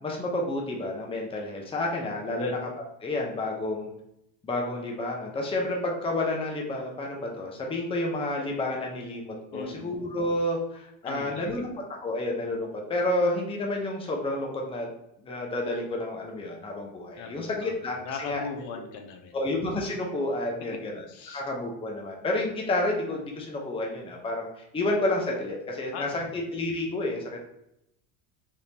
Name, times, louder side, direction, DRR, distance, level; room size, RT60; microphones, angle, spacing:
voice 1, 0.0-2.6 3.0-3.9 4.4-11.7 12.0-14.9 15.2-18.5 19.3-21.0 21.3-27.5, left 2 dB, 10° left, 0 dB, 0.6 m, -30 dB
voice 2, 9.5-9.9 11.0-11.4 17.2-19.4 20.7-21.4 25.9-26.3, left 5 dB, 70° left, 4 dB, 0.8 m, -39 dB
3.6 x 2.4 x 2.8 m, 0.80 s
supercardioid pair, 110°, 48 cm